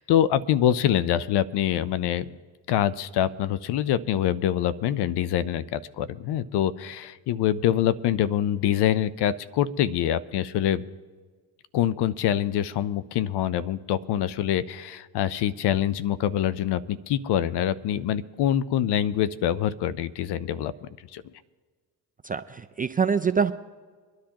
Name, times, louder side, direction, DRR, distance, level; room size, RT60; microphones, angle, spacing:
voice 1, 0.0-2.2 2.7-10.8 11.7-21.2, left 11 dB, 55° left, 16 dB, 0.7 m, -25 dB
voice 2, 22.2-23.5, right 6 dB, 20° right, 9 dB, 0.3 m, -25 dB
24.5 x 10.5 x 2.9 m, 1.5 s
supercardioid pair, 75°, 47 cm